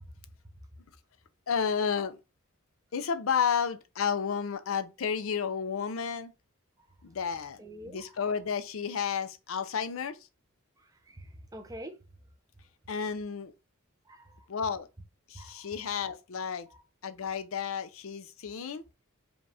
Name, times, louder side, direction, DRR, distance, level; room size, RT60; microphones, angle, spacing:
voice 1, 1.5-2.2 2.9-6.3 7.0-10.2 12.9-13.5 14.5-14.9 15.3-16.7 17.0-18.8, left 6 dB, 75° left, 0.5 m, -32 dB
voice 2, 7.6-8.0 11.1-12.0 14.1-14.5 15.3-15.6, right 1 dB, 15° right, 0.7 m, -45 dB
5.0 x 2.4 x 3.3 m
head